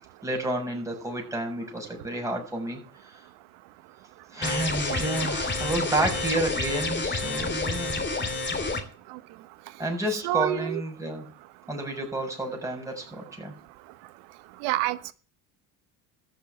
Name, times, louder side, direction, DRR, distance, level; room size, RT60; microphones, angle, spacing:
voice 1, 0.2-2.8 3.1-3.2 4.3-8.0 9.8-11.3 11.7-13.5, right 1 dB, 5° right, 0 dB, 6.8 m, -30 dB
sound 1, 4.4-8.8, left 3 dB, 25° left, 3.0 m, -29 dB
voice 2, 4.9-5.3 9.1-9.2 10.2-10.8 14.6-15.1, right 15 dB, 70° right, 15 dB, 1.1 m, -28 dB
14.0 x 6.9 x 7.8 m, 0.40 s
supercardioid pair, 90°, 43 cm